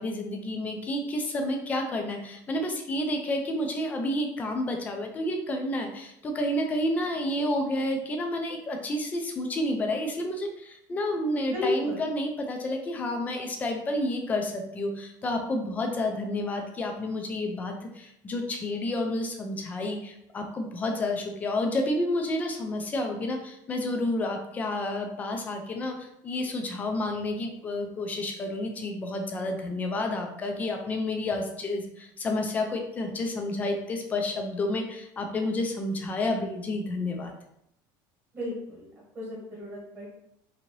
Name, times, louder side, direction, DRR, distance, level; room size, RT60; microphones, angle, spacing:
voice 1, 0.0-37.3, left 1 dB, 15° left, 3 dB, 0.3 m, -30 dB
voice 2, 11.5-12.0 38.3-38.9 39.1-40.1, left 1 dB, 20° right, -5 dB, 1.2 m, -32 dB
2.7 x 2.6 x 3.0 m, 0.77 s
cardioid pair, 175°, 10 cm